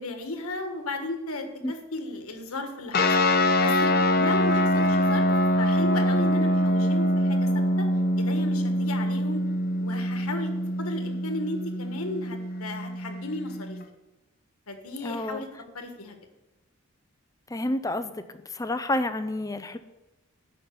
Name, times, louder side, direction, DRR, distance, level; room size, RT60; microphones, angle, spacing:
voice 1, 0.0-5.3 5.6-7.9 8.2-9.4 9.8-10.5 10.8-13.8 14.7-15.5 15.7-16.1, left 2 dB, 80° left, 5 dB, 1.4 m, -35 dB
sound 1, 2.9-13.8, left 1 dB, 45° left, 0.9 m, -24 dB
voice 2, 15.0-15.4 17.5-18.2 18.5-19.8, left 1 dB, 15° left, 11 dB, 0.5 m, -29 dB
9.3 x 5.7 x 6.9 m, 1.0 s
head